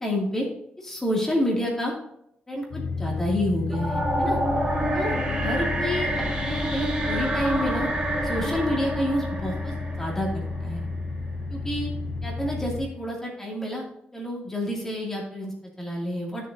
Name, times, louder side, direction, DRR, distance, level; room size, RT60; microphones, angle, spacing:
voice 1, 0.0-0.5 0.8-1.9 2.5-4.4 4.9-5.1 5.4-7.9 8.2-10.9 11.5-11.9 12.2-13.8 14.1-16.5, equal, 15° left, -2 dB, 2.3 m, -29 dB
sound 1, 2.7-12.8, left 3 dB, 70° left, 2.9 m, -32 dB
sound 2, 3.7-10.8, right 1 dB, 25° right, 2.1 m, -28 dB
12.0 x 7.3 x 2.7 m, 0.75 s
wide cardioid pair, 125°, 3 cm